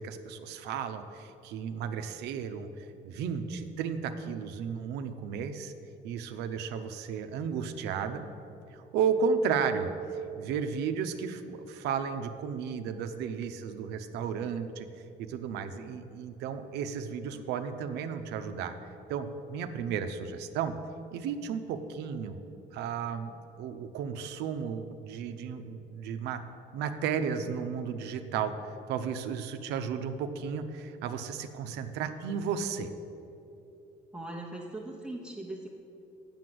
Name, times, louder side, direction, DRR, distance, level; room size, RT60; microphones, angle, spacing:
voice 1, 0.0-5.7 6.0-8.3 8.7-9.9 10.4-14.9 15.2-18.7 19.1-20.7 21.1-22.4 22.7-23.3 23.6-26.4 26.7-28.5 28.9-32.9, right 6 dB, 85° right, 8 dB, 0.6 m, -33 dB
voice 2, 34.1-35.7, right 2 dB, 5° right, -3 dB, 0.8 m, -40 dB
7.6 x 7.0 x 7.7 m, 2.8 s
cardioid pair, 110°, 17 cm